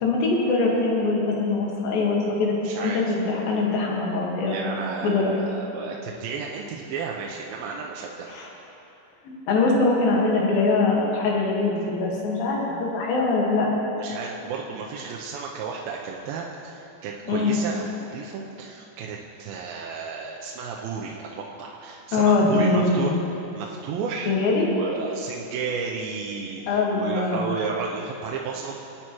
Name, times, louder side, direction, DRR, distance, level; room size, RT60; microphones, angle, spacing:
voice 1, 0.0-4.7 5.0-5.3 8.3-8.5 9.2-13.7 17.3-17.6 22.1-23.2 24.3-24.7 26.7-27.5, left 3 dB, 80° left, -3 dB, 3.4 m, -23 dB
voice 2, 2.6-3.0 4.4-8.3 14.0-24.3 24.6-28.7, right 5 dB, 90° right, -2 dB, 2.5 m, -33 dB
19.5 x 9.7 x 3.0 m, 3.0 s
omnidirectional pair, 4.1 m